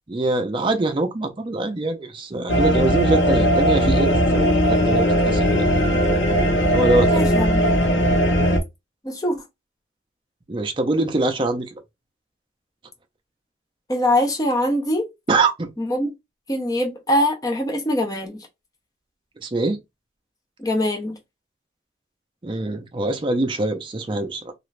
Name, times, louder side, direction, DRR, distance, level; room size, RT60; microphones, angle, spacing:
voice 1, 0.1-5.7 6.7-7.1 10.5-11.8 15.3-15.7 19.4-19.8 22.4-24.5, right 2 dB, 25° right, 0.5 m, -23 dB
sound 1, 2.5-8.6, equal, 85° left, 1.0 m, -18 dB
voice 2, 7.1-7.6 9.0-9.4 13.9-15.1 15.8-16.1 16.5-18.5 20.6-21.2, left 1 dB, 20° left, 0.6 m, -23 dB
2.9 x 2.4 x 3.2 m
head